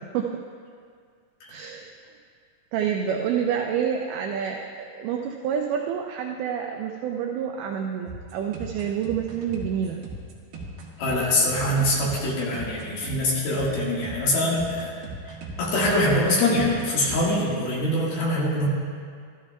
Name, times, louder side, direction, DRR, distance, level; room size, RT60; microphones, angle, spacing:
voice 1, 1.5-1.9 2.7-10.0, right 8 dB, 85° right, 1 dB, 2.5 m, -28 dB
sound 1, 8.1-17.5, right 2 dB, 65° right, 3.2 m, -38 dB
voice 2, 11.0-14.9 15.3-18.7, left 1 dB, 60° left, -5 dB, 3.1 m, -24 dB
14.0 x 13.5 x 2.3 m, 2.1 s
omnidirectional pair, 5.8 m